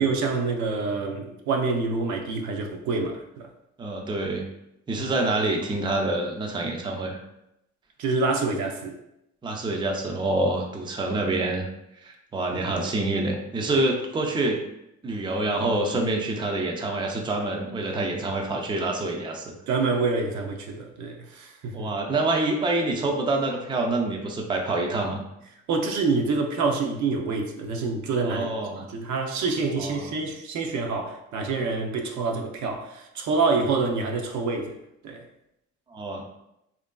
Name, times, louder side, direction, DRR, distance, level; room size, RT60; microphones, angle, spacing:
voice 1, 0.0-3.5 8.0-9.0 12.5-12.9 19.7-21.9 25.7-28.5 28.8-34.7 35.0-35.2, right 4 dB, 70° right, 3 dB, 0.5 m, -27 dB
voice 2, 3.8-4.5 4.9-7.2 9.4-11.7 12.0-14.6 15.0-19.6 21.7-25.2 28.2-28.8 29.8-30.2 35.9-36.2, right 2 dB, 15° right, 1 dB, 0.4 m, -26 dB
2.8 x 2.5 x 2.2 m, 0.84 s
cardioid pair, 90°, 30 cm